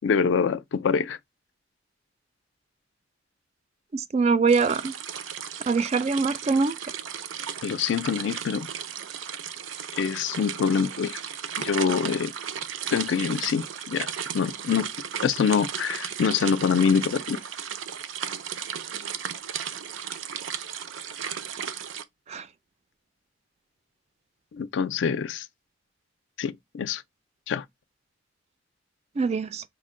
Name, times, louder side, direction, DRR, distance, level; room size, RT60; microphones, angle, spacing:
voice 1, 0.0-1.2 7.6-8.7 10.0-11.2 11.6-12.3 12.9-14.9 15.2-17.4 24.5-25.5 26.4-27.0 27.5-27.6, left 6 dB, 70° left, 0.4 m, -25 dB
voice 2, 3.9-4.9 5.7-6.8 22.3-22.5 29.2-29.6, right 4 dB, 35° right, 0.3 m, -23 dB
sound 1, 4.5-22.0, right 8 dB, 90° right, 0.5 m, -35 dB
5.8 x 2.1 x 3.6 m
head